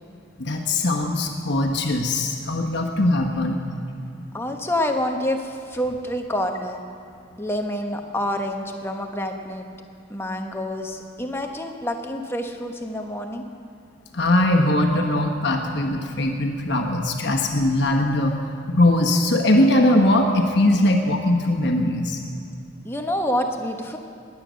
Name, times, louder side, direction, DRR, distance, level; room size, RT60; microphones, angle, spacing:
voice 1, 0.4-3.6 14.1-18.3 18.7-22.2, left 1 dB, 55° left, 3 dB, 1.3 m, -20 dB
voice 2, 4.3-6.8 7.4-9.7 10.1-13.4 22.8-24.0, left 1 dB, 10° left, 3 dB, 1.0 m, -27 dB
20.0 x 9.6 x 6.4 m, 2.5 s
head